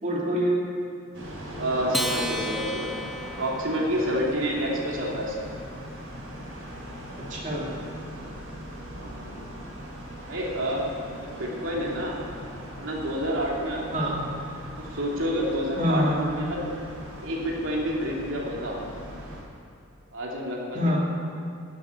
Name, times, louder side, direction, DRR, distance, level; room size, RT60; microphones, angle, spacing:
voice 1, 0.0-0.6 7.3-7.8 13.9-14.2 15.8-16.2 20.7-21.0, equal, 35° right, -3 dB, 2.6 m, -25 dB
sound 1, 1.1-19.4, equal, 90° right, 4.1 m, -40 dB
voice 2, 1.6-2.9 3.4-5.5 8.9-9.6 10.3-10.9 11.2-12.2 12.8-13.9 14.8-16.7 17.2-18.8 20.1-21.0, equal, 65° right, -3 dB, 2.8 m, -29 dB
Acoustic guitar, 1.9-4.6, equal, ahead, 0.6 m, -33 dB
12.5 x 8.1 x 9.5 m, 2.4 s
head